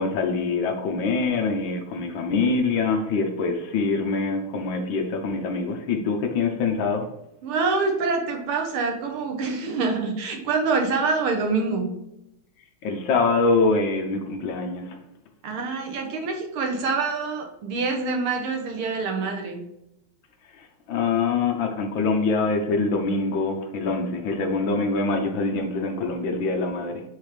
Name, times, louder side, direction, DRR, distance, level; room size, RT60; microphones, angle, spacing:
voice 1, 0.0-7.1 12.8-15.0 20.6-27.0, left 4 dB, 70° left, 3 dB, 1.6 m, -24 dB
voice 2, 7.4-11.9 15.4-19.6, right 4 dB, 85° right, 2 dB, 2.1 m, -26 dB
9.0 x 3.7 x 3.3 m, 0.83 s
omnidirectional pair, 2.3 m